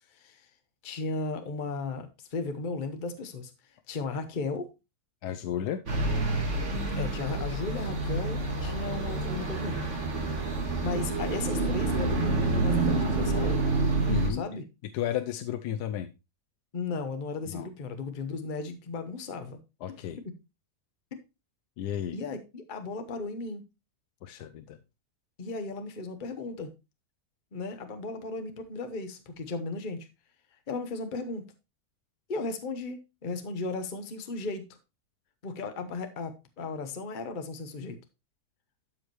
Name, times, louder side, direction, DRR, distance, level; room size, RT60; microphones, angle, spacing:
voice 1, 0.1-0.5 0.8-3.5 3.9-4.7 6.7-9.8 10.5-13.6 14.3-14.6 16.7-19.6 22.1-23.6 25.4-26.7 27.5-30.1 30.7-31.4 32.3-34.7 35.4-38.0, left 3 dB, 35° left, 7 dB, 1.1 m, -35 dB
voice 2, 5.2-5.8 14.1-14.4 14.9-16.1 17.4-17.7 19.8-20.2 21.8-22.2 24.2-24.8, left 10 dB, 80° left, 9 dB, 1.2 m, -33 dB
sound 1, 5.9-14.3, right 2 dB, 45° right, 2.0 m, -28 dB
12.5 x 4.9 x 3.1 m, 0.26 s
omnidirectional pair, 1.7 m